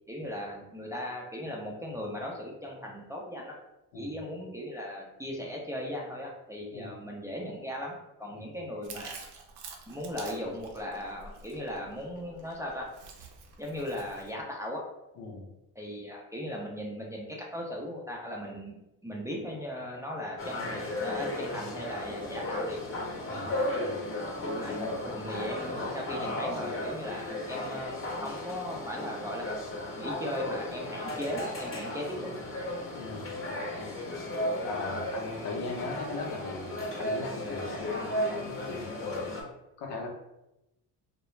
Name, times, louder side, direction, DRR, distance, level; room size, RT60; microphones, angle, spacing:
voice 1, 0.1-3.5 3.9-9.3 9.9-12.9 13.6-14.8 15.8-18.8 19.0-22.8 24.5-32.3, left 1 dB, 10° right, -3 dB, 0.4 m, -38 dB
voice 2, 6.7-7.0 8.3-8.6 15.2-15.5 23.3-23.5 23.8-24.0 24.7-24.9 32.9-34.0 34.6-39.2 39.8-40.1, left 3 dB, 80° left, 0 dB, 0.7 m, -39 dB
Chewing mastication, 8.8-14.3, right 5 dB, 75° right, 0.6 m, -48 dB
sound 1, 20.4-39.4, left 1 dB, 30° left, 0.7 m, -35 dB
2.3 x 2.1 x 3.0 m, 0.91 s
supercardioid pair, 80°, 40 cm